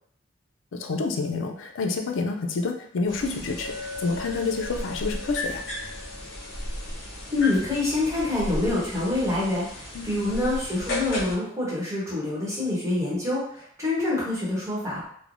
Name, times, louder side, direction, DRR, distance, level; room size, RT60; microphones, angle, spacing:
voice 1, 0.8-3.7 4.0-5.6 9.9-10.1, left 3 dB, 85° left, 4 dB, 0.4 m, -28 dB
sound 1, 3.1-11.4, left 1 dB, 65° left, 0.8 m, -35 dB
Chink clink, 3.6-8.0, left 3 dB, 80° right, 1.2 m, -41 dB
voice 2, 7.3-15.1, left 2 dB, 15° right, -7 dB, 0.9 m, -26 dB
3.1 x 2.0 x 2.5 m, 0.64 s
head